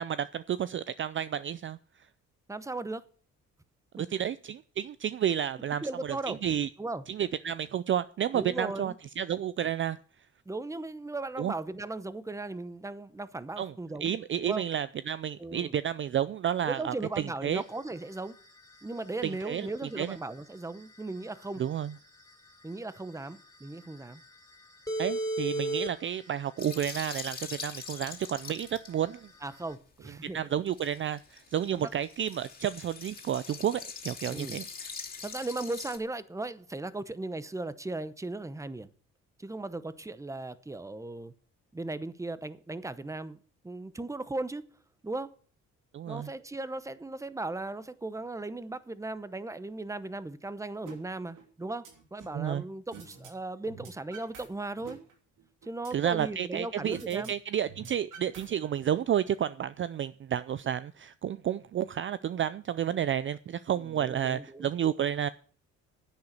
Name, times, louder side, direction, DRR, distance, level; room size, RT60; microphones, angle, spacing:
voice 1, 0.0-1.8 4.1-6.7 7.1-10.0 11.4-11.5 13.6-13.7 14.0-17.6 19.2-19.7 20.0-20.2 21.6-21.9 25.0-29.2 30.3-34.9 45.9-46.3 52.3-52.6 55.9-65.3, right 9 dB, 40° right, 0.4 m, -31 dB
voice 2, 2.5-3.0 4.0-4.2 5.7-6.4 6.8-7.0 8.3-9.0 10.5-14.1 14.4-14.6 15.4-15.7 16.6-18.4 18.8-21.6 22.6-24.2 29.4-30.4 31.7-31.9 34.3-34.6 35.2-38.9 39.4-41.3 41.7-43.4 43.6-44.7 45.0-45.3 46.1-55.0 55.6-57.3 63.7-64.7, right 2 dB, 10° right, 0.8 m, -37 dB
sound 1, 17.6-29.7, right 1 dB, 10° left, 3.0 m, -39 dB
sound 2, 26.6-28.9 30.7-36.0, left 5 dB, 30° left, 2.5 m, -43 dB
sound 3, 50.9-51.0 51.4-52.4 52.9-53.3 53.6-54.5 54.8-56.4 56.9-57.3 57.6-58.9, right 6 dB, 90° right, 2.9 m, -48 dB
10.5 x 8.7 x 6.6 m
cardioid pair, 90°, 30 cm